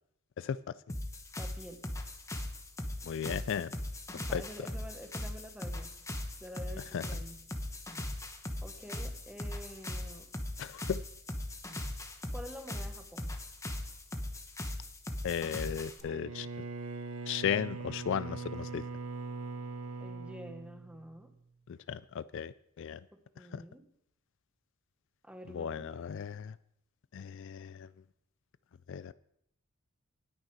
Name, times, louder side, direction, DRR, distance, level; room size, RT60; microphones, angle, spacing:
voice 1, 0.4-0.7 3.0-3.8 4.3-4.4 6.9-7.0 10.6-11.0 15.2-16.5 17.3-18.8 21.7-23.0 23.5-23.6 25.5-26.6 27.1-27.9 28.9-29.1, left 7 dB, 60° left, 17 dB, 0.3 m, -35 dB
sound 1, 0.9-16.0, left 1 dB, 15° left, 1.0 m, -39 dB
voice 2, 1.4-1.9 4.1-6.0 6.4-7.4 8.6-10.3 12.3-13.4 20.0-21.3 23.1-23.9 25.2-25.9, equal, 5° right, 6 dB, 1.1 m, -48 dB
Bowed string instrument, 16.0-21.4, right 4 dB, 90° right, 0.8 m, -41 dB
19.5 x 6.6 x 4.7 m, 0.75 s
head